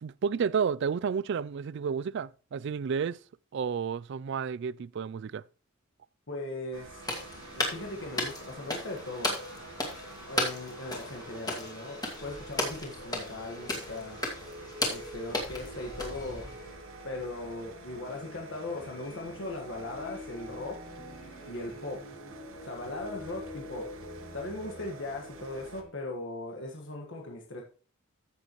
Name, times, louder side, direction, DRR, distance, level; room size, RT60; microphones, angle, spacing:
voice 1, 0.0-3.2 3.5-5.4, right 6 dB, 55° right, 0.3 m, -31 dB
voice 2, 6.3-7.0 7.5-9.4 10.3-14.2 14.9-16.5 17.0-20.8 21.5-22.0 22.6-23.9 24.3-27.6, left 2 dB, 60° left, 1.6 m, -39 dB
sound 1, 6.7-25.8, right 4 dB, 75° right, 1.2 m, -50 dB
sound 2, 6.9-25.9, left 1 dB, 85° left, 4.1 m, -47 dB
sound 3, 7.0-16.7, left 2 dB, 20° left, 2.3 m, -36 dB
14.5 x 6.7 x 3.1 m
head